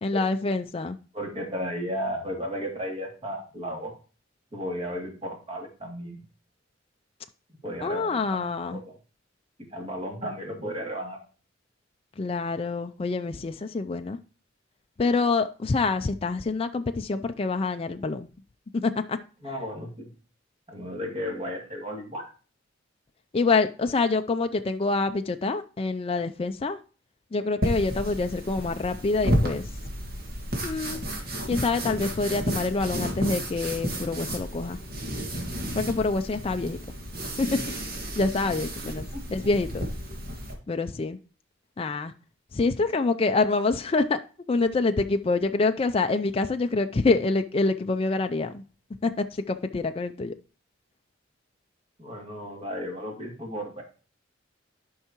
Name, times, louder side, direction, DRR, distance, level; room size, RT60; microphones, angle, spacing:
voice 1, 0.0-1.0 7.8-8.8 12.2-14.2 15.0-18.3 18.7-19.2 23.3-26.8 27.3-29.7 30.6-31.0 31.5-34.8 35.7-36.8 37.4-37.6 38.2-39.9 40.7-41.2 41.8-42.1 42.5-44.2 44.5-48.6 49.0-50.3, left 3 dB, 30° left, 0.4 m, -26 dB
voice 2, 1.1-3.9 4.5-6.2 7.6-9.0 9.7-11.2 19.4-20.1 20.7-22.3 39.1-39.5 52.0-53.8, equal, 30° right, 2.4 m, -34 dB
sound 1, 27.6-40.5, equal, 50° right, 1.8 m, -32 dB
12.0 x 5.5 x 2.9 m
head